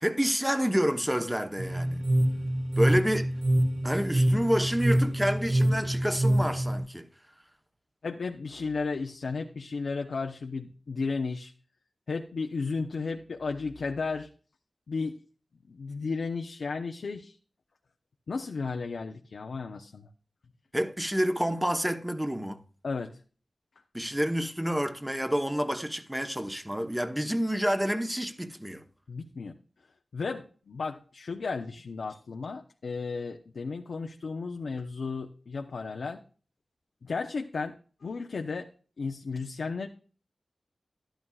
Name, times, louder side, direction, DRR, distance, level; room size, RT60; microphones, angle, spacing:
voice 1, 0.0-2.1 2.8-3.3 3.8-7.1 20.7-22.6 23.9-28.8, equal, 5° right, 0.9 m, -28 dB
sound 1, 1.6-6.8, right 1 dB, 70° right, 1.8 m, -26 dB
voice 2, 8.0-11.5 12.1-14.3 14.9-15.2 15.7-17.4 18.3-20.1 22.8-23.2 29.1-29.5 30.1-36.2 37.0-37.7 38.0-38.7 39.0-39.9, left 4 dB, 85° left, 0.7 m, -34 dB
12.5 x 11.0 x 2.4 m
wide cardioid pair, 100°, 0 cm